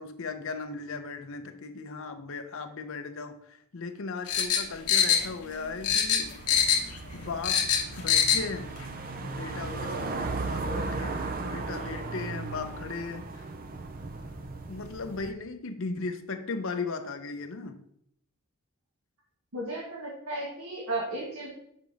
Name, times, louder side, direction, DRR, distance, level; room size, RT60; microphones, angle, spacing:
voice 1, 0.0-6.3 7.1-8.7 9.2-13.5 14.7-17.8, left 4 dB, 60° left, 7 dB, 0.6 m, -37 dB
sound 1, 4.3-5.6 5.8-7.0 7.2-8.4 8.8-8.9, left 8 dB, 90° left, 0.9 m, -24 dB
sound 2, 6.2-15.3, right 3 dB, 40° right, 0.5 m, -36 dB
voice 2, 19.5-21.5, right 2 dB, 70° right, -4 dB, 1.5 m, -34 dB
6.8 x 3.9 x 4.8 m, 0.72 s
head